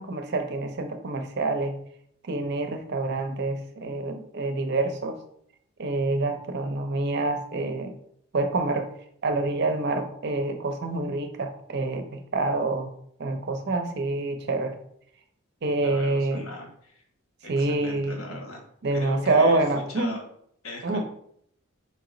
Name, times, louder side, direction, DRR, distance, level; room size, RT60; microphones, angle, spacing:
voice 1, 0.0-1.8 2.2-5.2 5.8-7.9 8.3-8.9 9.2-12.9 13.2-14.8 15.6-16.5 17.5-18.2 18.8-20.1 20.8-21.0, right 2 dB, 50° right, 6 dB, 0.6 m, -26 dB
voice 2, 15.8-17.0 17.4-18.6 18.9-20.2 20.6-21.0, left 1 dB, 75° left, 2 dB, 1.2 m, -39 dB
4.6 x 2.9 x 3.8 m, 0.67 s
head